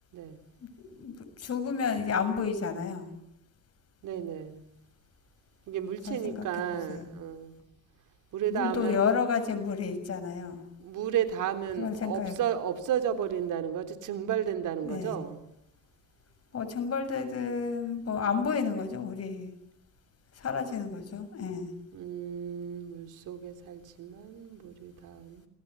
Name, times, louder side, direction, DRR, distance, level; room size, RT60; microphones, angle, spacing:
voice 1, 0.9-3.1 6.1-6.4 6.7-7.1 8.5-10.6 11.8-12.4 14.8-15.2 16.5-19.5 20.3-21.7, left 6 dB, 55° left, 6.8 m, -31 dB
voice 2, 4.0-4.7 5.7-7.6 8.3-9.0 10.8-15.4 21.9-25.5, right 9 dB, 85° right, 3.6 m, -33 dB
28.5 x 20.5 x 9.7 m
cardioid pair, 90°, 30 cm